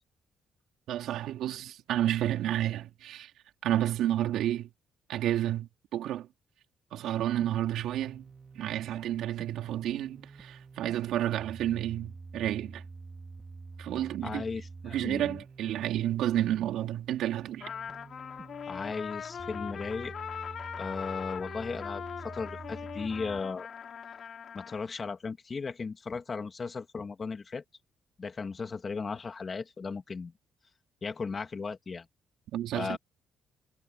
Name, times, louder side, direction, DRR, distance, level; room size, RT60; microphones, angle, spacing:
voice 1, 0.9-3.3 3.6-4.7 5.1-6.3 6.9-8.2 8.5-12.8 13.8-14.4 14.8-17.7 32.5-33.0, right 12 dB, 80° right, 4.3 m, -30 dB
sound 1, 7.4-23.4, right 4 dB, 20° right, 4.6 m, -48 dB
voice 2, 14.2-15.4 18.7-20.1 20.8-23.7 24.1-27.6 28.2-30.3 31.0-32.1 32.7-33.0, left 4 dB, 30° left, 2.5 m, -36 dB
Trumpet, 17.6-24.8, left 7 dB, 50° left, 5.0 m, -41 dB
cardioid pair, 135°, 0 cm